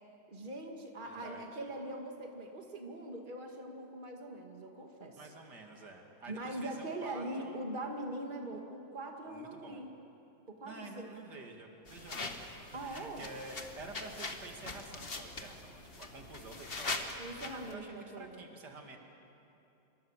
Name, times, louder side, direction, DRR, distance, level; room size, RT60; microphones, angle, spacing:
voice 1, 0.3-5.2 6.3-9.9 10.5-11.1 12.7-13.3 17.2-18.5, right 1 dB, 30° right, 2 dB, 2.2 m, -42 dB
voice 2, 1.0-1.4 5.2-7.6 9.3-9.8 10.7-19.0, right 3 dB, 80° right, 2 dB, 2.8 m, -49 dB
sound 1, 11.9-17.7, left 3 dB, 35° left, 1.8 m, -42 dB
27.5 x 23.5 x 7.4 m, 2.8 s
omnidirectional pair, 1.8 m